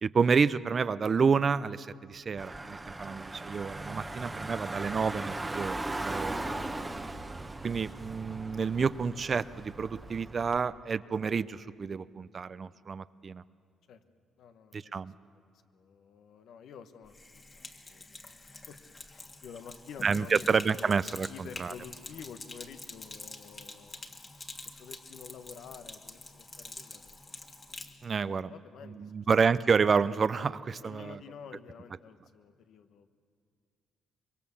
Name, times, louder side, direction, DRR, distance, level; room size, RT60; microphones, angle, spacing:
voice 1, 0.0-6.4 7.6-13.4 14.7-15.1 20.0-21.3 21.6-21.7 28.0-28.5 29.0-31.2, right 5 dB, 40° right, 16 dB, 0.5 m, -29 dB
Car / Engine, 2.4-10.6, right 2 dB, 15° right, 1.1 m, -38 dB
voice 2, 14.4-18.8 19.1-20.9 21.3-24.0 24.8-27.5 28.1-29.1 29.4-29.7 30.8-33.1, left 7 dB, 75° left, 8 dB, 1.2 m, -50 dB
Sink (filling or washing), 17.0-28.0, left 2 dB, 30° left, 1.8 m, -46 dB
24.5 x 22.5 x 7.1 m, 2.2 s
cardioid pair, 90°, 0 cm